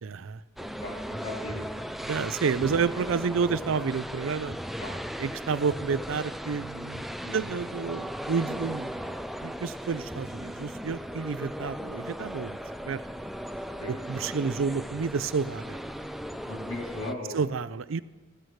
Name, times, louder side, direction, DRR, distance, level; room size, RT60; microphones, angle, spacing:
voice 1, 0.0-0.4 2.0-4.6 5.2-9.2 9.4-12.6 12.8-13.0 13.9-15.8 17.3-18.0, right 5 dB, 80° right, 15 dB, 0.4 m, -30 dB
voice 2, 0.6-1.6 2.2-2.4 4.8-4.9 7.2-7.4 13.8-13.9 16.4-17.5, left 2 dB, 65° left, -3 dB, 3.2 m, -38 dB
sound 1, 0.6-17.1, equal, ahead, 0.3 m, -37 dB
20.0 x 14.0 x 3.2 m, 1.3 s
head